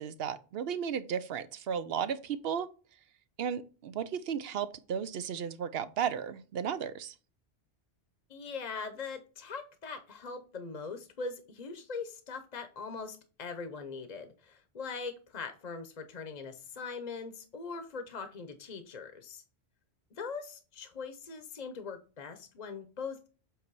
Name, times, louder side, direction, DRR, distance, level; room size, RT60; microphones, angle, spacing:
voice 1, 0.0-2.7 3.4-7.1, right 8 dB, 70° right, 0.8 m, -34 dB
voice 2, 8.3-19.4 20.2-23.3, left 4 dB, 45° left, 0.8 m, -41 dB
7.9 x 3.2 x 4.6 m
omnidirectional pair, 1.1 m